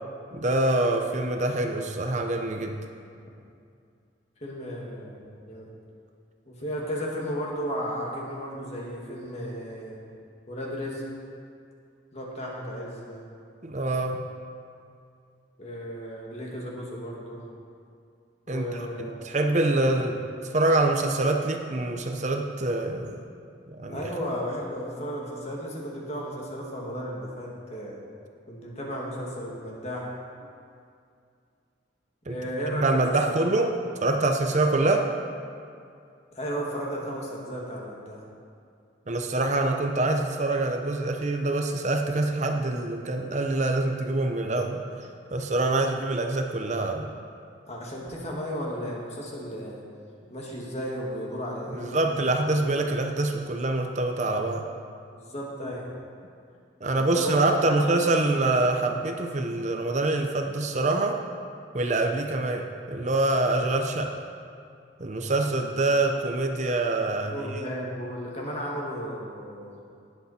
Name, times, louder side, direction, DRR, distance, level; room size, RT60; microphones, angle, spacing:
voice 1, 0.3-2.8 13.6-14.2 18.5-23.2 23.7-24.1 32.3-32.4 32.7-33.7 34.0-35.1 39.1-44.8 45.3-47.1 51.7-54.7 56.8-61.2 61.7-64.1 65.0-67.5, right 2 dB, 40° right, 4 dB, 0.7 m, -25 dB
voice 2, 4.4-5.7 6.5-10.0 10.5-11.1 12.1-13.3 15.6-17.4 18.5-19.2 23.9-28.0 28.5-30.1 32.3-33.7 36.3-38.2 47.7-49.8 50.3-52.5 55.1-55.9 57.1-57.8 67.3-69.8, equal, 35° left, -3 dB, 2.2 m, -34 dB
18.5 x 8.5 x 4.3 m, 2.4 s
head